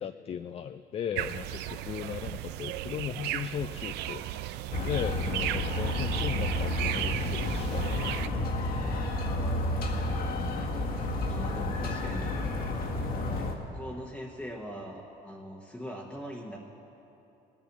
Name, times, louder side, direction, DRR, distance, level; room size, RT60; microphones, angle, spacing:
voice 1, 0.0-4.2 4.8-8.1, left 8 dB, 35° left, 10 dB, 0.4 m, -37 dB
sound 1, 1.1-8.3, right 13 dB, 85° right, 0.4 m, -35 dB
sound 2, 4.7-13.5, left 1 dB, 60° left, 1.7 m, -31 dB
voice 2, 11.2-12.3 13.4-16.6, equal, 5° left, -2 dB, 1.1 m, -41 dB
18.0 x 8.7 x 6.6 m, 3.0 s
cardioid pair, 110°, 17 cm